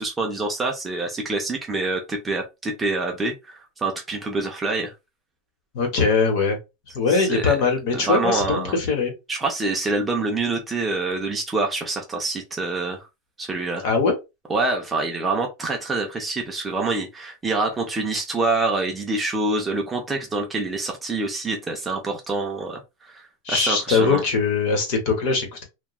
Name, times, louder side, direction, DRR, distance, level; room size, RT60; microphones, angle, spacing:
voice 1, 0.0-4.9 7.1-7.6 7.9-8.7 9.3-13.0 13.4-13.8 14.5-24.2, right 3 dB, 10° right, 0.4 m, -26 dB
voice 2, 5.7-6.6 6.9-9.1 13.8-14.1 23.4-25.6, left 4 dB, 45° left, 1.0 m, -21 dB
2.9 x 2.2 x 2.3 m
supercardioid pair, 180°, 0 cm